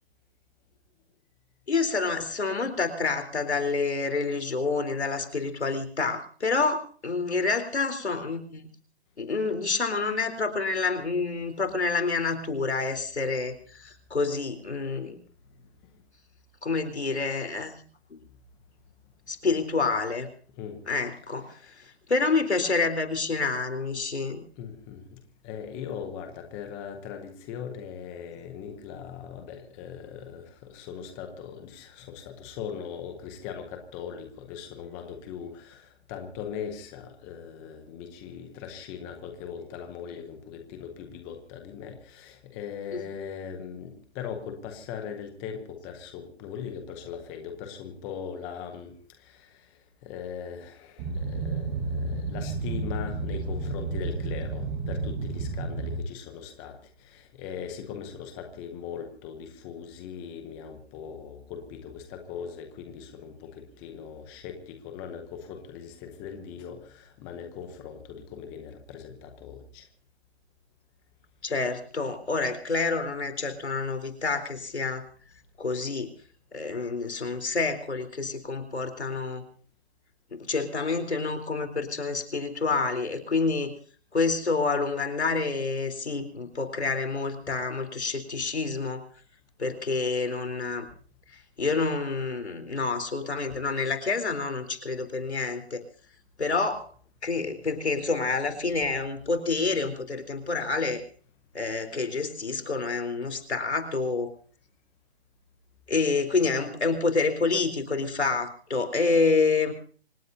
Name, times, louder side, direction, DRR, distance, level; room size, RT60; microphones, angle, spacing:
voice 1, 1.7-8.7 9.2-15.2 16.6-17.8 18.1-18.2 19.3-20.3 20.9-21.7 22.1-24.4 42.9-43.0 71.4-75.0 75.6-76.1 76.5-79.4 80.3-83.7 84.1-89.0 89.6-90.9 91.6-95.8 96.4-96.9 97.2-101.0 101.5-104.3 105.9-109.7, left 4 dB, 80° left, 7 dB, 3.9 m, -28 dB
voice 2, 21.3-21.7 24.6-49.7 50.0-69.8 87.5-87.6 93.5-93.6, left 7 dB, 5° left, 6 dB, 0.7 m, -40 dB
Boat Water vehicle, 51.0-56.0, right 3 dB, 15° right, 1.3 m, -31 dB
26.0 x 18.0 x 2.7 m, 0.43 s
hypercardioid pair, 155°, 32 cm